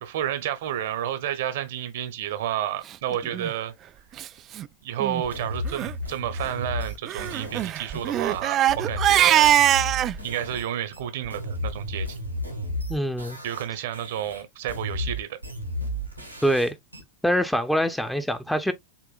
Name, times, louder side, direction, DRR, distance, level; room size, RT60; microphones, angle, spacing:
voice 1, 0.0-3.7 4.8-9.5 10.2-12.2 13.4-15.4, right 11 dB, 55° right, 0.9 m, -30 dB
Crying sobbing, 3.3-3.5 4.2-4.3 4.5-4.7 5.0-5.2 5.7-5.9 7.1-10.1, right 12 dB, 30° right, 0.3 m, -22 dB
sound 1, 5.2-10.7 10.9-13.7 13.9-17.0, left 1 dB, 90° right, 1.4 m, -33 dB
voice 2, 12.9-13.4 16.4-16.7 17.2-18.7, equal, 5° left, 0.7 m, -24 dB
7.1 x 2.9 x 2.4 m
figure-of-eight pair, 90°, 0 cm